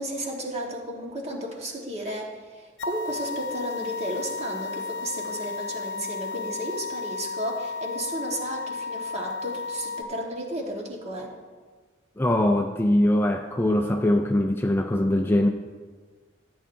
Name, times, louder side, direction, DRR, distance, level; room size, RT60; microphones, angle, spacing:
voice 1, 0.0-11.3, equal, 35° right, 0 dB, 1.5 m, -33 dB
sound 1, 2.8-10.0, left 4 dB, 70° left, 0.5 m, -33 dB
voice 2, 12.2-15.5, left 1 dB, 10° left, 4 dB, 0.4 m, -22 dB
14.5 x 8.8 x 2.7 m, 1.4 s
head